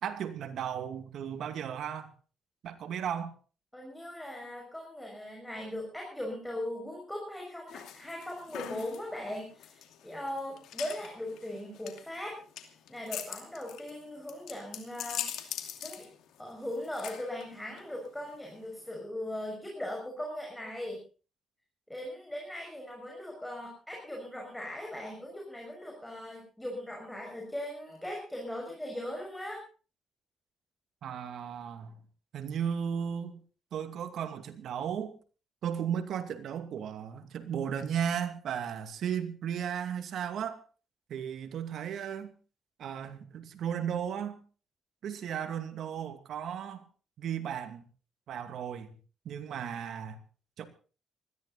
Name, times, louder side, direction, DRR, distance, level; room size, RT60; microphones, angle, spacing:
voice 1, 0.0-2.1 2.6-3.3 31.0-32.0 32.3-33.4 33.7-35.2 35.6-40.6 41.1-42.3 42.8-44.4 45.0-46.8 47.2-47.8 48.3-49.0 49.2-50.2 50.6-50.7, right 8 dB, 70° right, 8 dB, 2.4 m, -35 dB
voice 2, 3.7-12.4 12.9-15.3 15.8-16.1 16.4-21.0 21.9-29.6, left 1 dB, 5° left, 0 dB, 6.4 m, -39 dB
sound 1, 7.7-19.0, left 10 dB, 85° left, 2.6 m, -43 dB
20.5 x 14.0 x 4.2 m, 0.37 s
cardioid pair, 90°, 0 cm